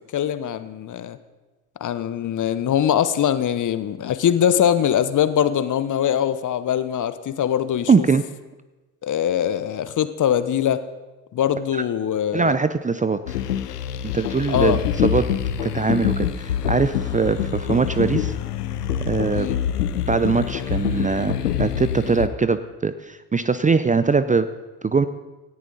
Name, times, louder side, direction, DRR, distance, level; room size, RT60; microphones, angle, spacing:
voice 1, 0.1-1.2 1.8-8.1 9.0-10.8 11.3-12.6 14.5-14.8 19.3-19.6, left 9 dB, 40° left, 13 dB, 1.0 m, -22 dB
voice 2, 7.9-8.2 12.3-13.2 14.1-15.2 15.6-18.3 19.1-19.5 20.1-24.5 24.8-25.1, right 4 dB, 15° right, 13 dB, 0.6 m, -21 dB
sound 1, 13.3-22.3, left 9 dB, 90° left, 0.8 m, -25 dB
18.0 x 14.0 x 4.0 m, 1.2 s
hypercardioid pair, 55°, 46 cm